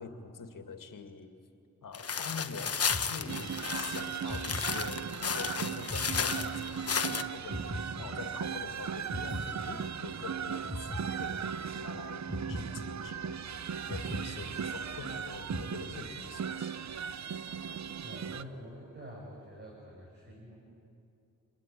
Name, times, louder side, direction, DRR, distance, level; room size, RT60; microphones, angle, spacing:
voice 1, 0.0-1.3 1.8-13.3 13.9-16.8, left 4 dB, 70° left, 6 dB, 2.3 m, -45 dB
sound 1, 1.9-7.2, left 6 dB, 45° left, 1.2 m, -34 dB
sound 2, 2.9-3.8 4.3-5.4 5.9-7.1 7.5-8.7 9.1-10.3 10.7-11.8 12.3-13.5 13.9-15.1 15.5-16.4, left 1 dB, 5° left, 1.8 m, -41 dB
sound 3, 3.3-18.4, right 7 dB, 55° right, 0.8 m, -37 dB
voice 2, 18.0-20.6, equal, 30° right, -2 dB, 6.5 m, -47 dB
29.0 x 22.0 x 9.2 m, 2.7 s
cardioid pair, 65°, 34 cm